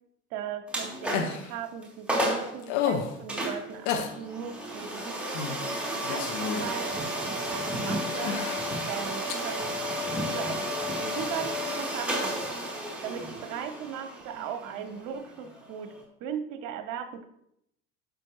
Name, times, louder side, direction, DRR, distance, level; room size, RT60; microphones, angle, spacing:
voice 1, 0.3-8.4 8.9-9.7 10.3-10.7 11.0-12.5 13.0-17.3, right 8 dB, 55° right, 9 dB, 1.1 m, -38 dB
sound 1, 0.7-1.4 1.8-1.9 2.1-2.5 3.3-16.0, equal, 5° right, 2.9 m, -32 dB
sound 2, 1.1-1.5 2.6-3.2 3.9-4.1 5.3-5.6 5.9-6.8 7.5-7.6 8.2-8.7 9.3-9.4 11.1-11.2, left 8 dB, 55° left, 1.2 m, -31 dB
11.5 x 7.2 x 3.1 m, 0.79 s
figure-of-eight pair, 65°, 38 cm